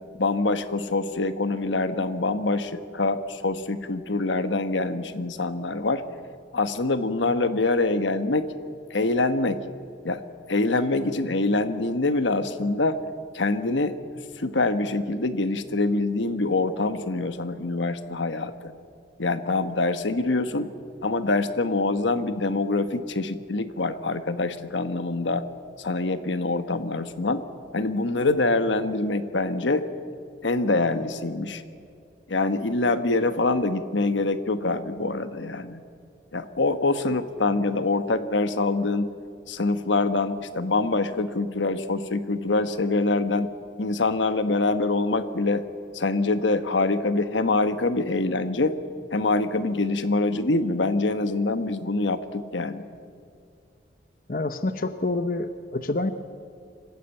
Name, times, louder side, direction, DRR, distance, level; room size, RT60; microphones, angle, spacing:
voice 1, 0.2-6.0 6.5-8.5 8.9-9.6 10.0-10.2 10.5-13.0 13.3-14.0 14.4-18.7 19.2-20.7 21.0-25.4 25.8-27.4 27.7-29.9 30.4-31.6 32.3-35.8 36.3-39.1 39.5-43.5 43.8-45.6 45.9-48.7 49.1-52.9, left 2 dB, 85° left, 10 dB, 1.2 m, -25 dB
voice 2, 54.3-56.1, left 2 dB, 50° left, 10 dB, 0.8 m, -27 dB
25.5 x 15.5 x 8.9 m, 2.3 s
head